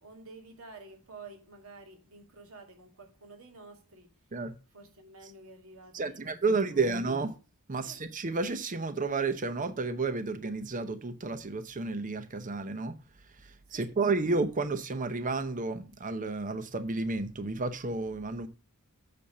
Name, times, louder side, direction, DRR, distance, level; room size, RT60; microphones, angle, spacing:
voice 1, 0.0-4.3 4.7-7.0 7.8-8.1 13.7-13.9, right 3 dB, 70° right, 2.6 m, -51 dB
voice 2, 5.9-7.3 7.7-13.0 13.4-18.5, right 3 dB, 35° right, 0.7 m, -31 dB
8.6 x 4.3 x 6.4 m
head